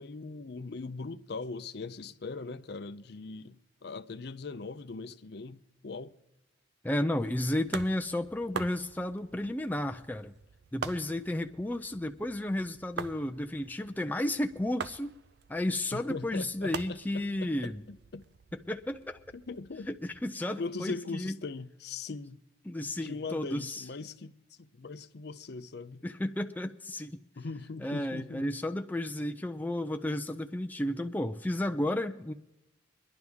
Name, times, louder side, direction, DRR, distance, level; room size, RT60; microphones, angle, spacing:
voice 1, 0.0-6.2 15.9-18.2 19.3-19.9 20.6-22.4 23.0-24.3 24.6-26.1 27.4-28.5, left 3 dB, 60° left, 0.6 m, -40 dB
voice 2, 6.8-10.3 10.7-15.2 15.5-17.8 18.7-19.2 19.9-21.3 22.7-23.8 26.0-27.2 27.8-32.3, left 1 dB, 10° left, 0.4 m, -33 dB
sound 1, 7.2-20.2, right 5 dB, 55° right, 0.5 m, -45 dB
23.5 x 11.0 x 3.5 m
head